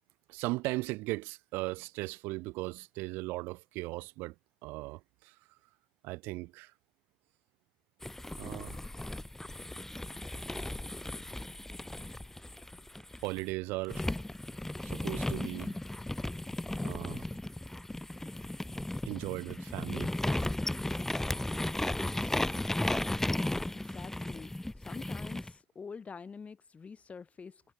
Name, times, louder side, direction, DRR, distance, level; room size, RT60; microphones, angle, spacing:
voice 1, 0.3-4.3 4.6-5.4 6.0-6.7 8.4-8.8 13.2-14.1 14.8-15.8 16.8-17.2 19.1-20.1 22.2-22.3, right 22 dB, 75° right, 0.5 m, -37 dB
sound 1, 8.0-13.4 13.9-25.5, left 1 dB, 10° left, 1.0 m, -35 dB
voice 2, 23.7-24.5 24.8-27.6, left 5 dB, 40° left, 2.5 m, -46 dB
hypercardioid pair, 55°, 4 cm